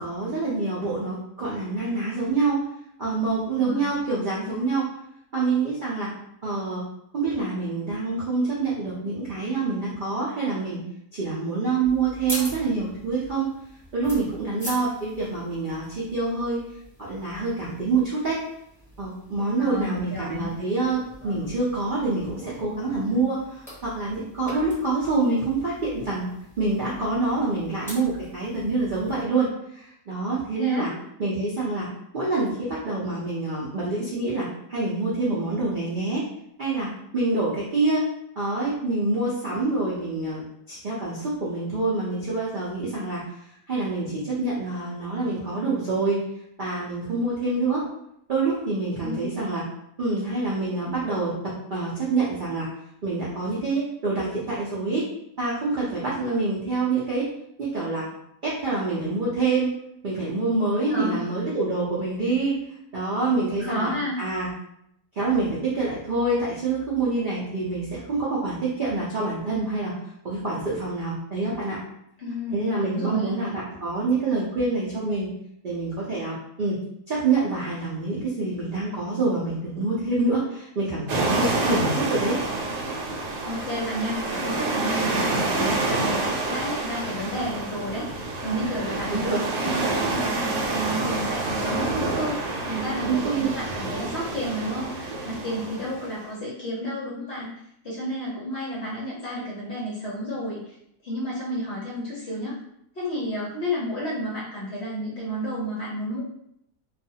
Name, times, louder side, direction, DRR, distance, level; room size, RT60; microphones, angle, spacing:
voice 1, 0.0-2.6 3.0-4.9 5.3-6.1 6.4-6.8 7.1-10.8 11.1-13.5 13.9-16.6 17.0-18.4 19.0-26.3 26.6-30.9 31.2-31.9 32.1-36.2 36.6-38.0 38.4-40.4 40.7-43.2 43.7-46.2 46.6-47.8 48.3-49.6 50.0-52.7 53.0-55.0 55.4-57.3 57.6-58.0 58.4-59.7 60.0-62.6 62.9-63.9 64.2-64.5 65.1-70.0 70.2-71.8 72.5-75.3 75.6-76.8 77.1-82.4 88.9-89.4 93.1-93.5, right 3 dB, 70° right, -7 dB, 0.4 m, -26 dB
voice 2, 3.6-4.0 19.6-20.5 30.6-30.9 49.0-49.3 60.8-61.3 63.4-64.2 72.2-73.3 81.5-81.7 83.4-97.5 97.8-100.7 101.0-102.6 103.0-106.2, equal, 55° left, -6 dB, 0.7 m, -31 dB
sound 1, 11.8-29.2, equal, ahead, 0.7 m, -43 dB
sound 2, 81.1-96.2, right 2 dB, 90° right, 1.2 m, -28 dB
2.5 x 2.4 x 2.7 m, 0.75 s
omnidirectional pair, 1.7 m